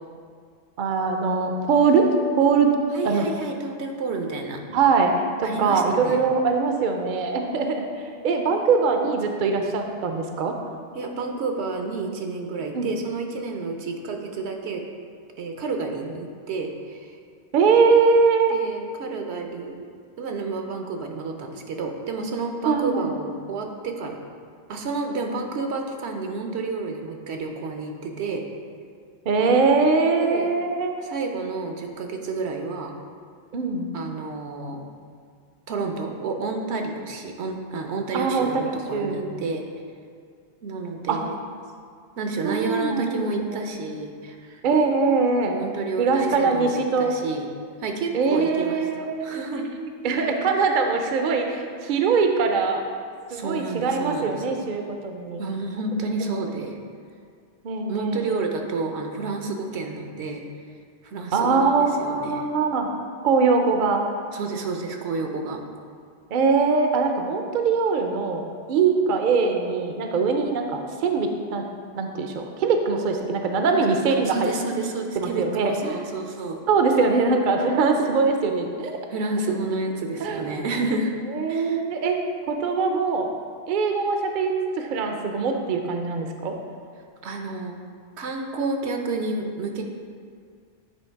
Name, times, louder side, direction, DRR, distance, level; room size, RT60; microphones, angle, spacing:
voice 1, 0.8-2.1 2.3-2.7 3.0-3.2 4.7-5.1 5.4-10.6 12.7-12.9 17.5-18.6 22.6-23.1 29.3-30.9 33.5-33.9 38.1-39.3 41.1-41.2 42.4-43.7 44.6-45.6 46.0-47.1 48.1-52.8 53.3-55.4 57.6-58.4 61.3-62.9 63.2-64.1 66.3-68.4 68.7-71.6 72.0-74.5 75.2-76.0 76.7-79.0 80.2-80.7 81.3-82.2 82.5-83.3 83.7-86.6, right 4 dB, 55° right, 4 dB, 0.6 m, -22 dB
voice 2, 2.9-4.6 5.4-6.2 10.9-14.8 15.4-17.2 18.5-19.8 20.2-24.2 24.7-28.5 30.2-30.5 31.0-32.9 33.9-34.9 35.7-39.7 40.6-41.4 42.2-44.6 45.5-47.5 47.8-49.7 53.3-54.6 55.4-56.8 57.9-60.4 61.0-61.7 62.0-62.4 64.3-65.6 74.3-76.6 79.1-81.1 81.5-81.8 87.2-87.7 88.2-89.8, right 3 dB, 75° right, 3 dB, 1.0 m, -30 dB
9.1 x 3.1 x 4.5 m, 2.2 s
omnidirectional pair, 1.1 m